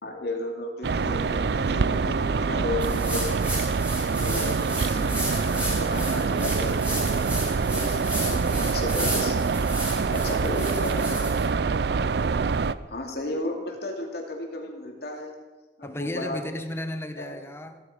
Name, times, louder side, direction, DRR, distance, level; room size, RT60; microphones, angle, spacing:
voice 1, 0.0-3.4 4.1-9.4 9.9-11.2 12.9-15.3 15.8-16.4 17.2-17.4, left 2 dB, 65° left, 2 dB, 2.6 m, -34 dB
sound 1, 0.8-12.7, right 4 dB, 65° right, 0.4 m, -25 dB
sound 2, 2.8-11.4, equal, 10° right, 4.5 m, -34 dB
voice 2, 10.3-10.8 15.8-17.8, left 1 dB, 15° left, 7 dB, 1.1 m, -35 dB
15.5 x 13.0 x 5.0 m, 1.2 s
head